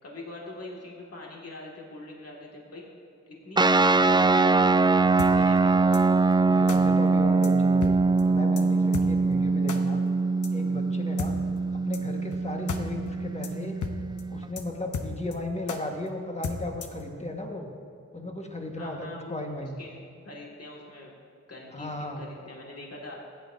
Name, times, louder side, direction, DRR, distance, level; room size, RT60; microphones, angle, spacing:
voice 1, 0.0-2.8 3.3-4.8 5.2-5.8 18.8-19.5 19.8-21.1 21.5-23.2, left 2 dB, 55° left, -2 dB, 2.1 m, -43 dB
sound 1, 3.6-14.5, right 3 dB, 15° right, 0.3 m, -23 dB
sound 2, 5.2-5.3 5.9-6.0 6.7-6.8 7.4-7.5 7.8-8.2 8.6-8.7 8.9-9.1 9.7-9.8 10.4-10.5 11.2-11.3 11.9-12.0 12.3-12.4 12.7-12.8 13.1-13.2 13.4-13.5 13.8-13.9 14.2-14.3 14.6-14.7 14.9-15.4 15.7-15.8 16.4-17.0, left 5 dB, 80° left, 0.8 m, -33 dB
voice 2, 6.5-8.0 8.2-10.0 10.5-11.3 11.7-13.8 14.3-17.7 18.1-19.8 21.7-22.2, left 1 dB, 20° left, 2 dB, 1.5 m, -35 dB
15.0 x 9.1 x 2.7 m, 2.5 s
cardioid pair, 50°, 30 cm